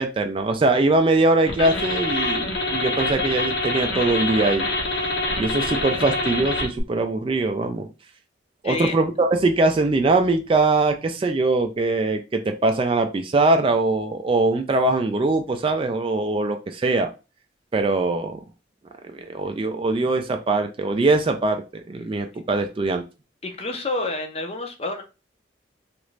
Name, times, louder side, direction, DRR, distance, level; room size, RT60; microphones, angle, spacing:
voice 1, 0.0-4.7 5.4-7.9 8.6-17.1 17.7-18.4 19.1-23.0, right 2 dB, 30° right, 6 dB, 0.3 m, -22 dB
sound 1, 1.5-6.8, left 2 dB, 80° left, 0.9 m, -25 dB
voice 2, 8.6-8.9 23.4-25.0, left 2 dB, 35° left, 5 dB, 0.6 m, -28 dB
3.0 x 2.5 x 3.1 m, 0.29 s
head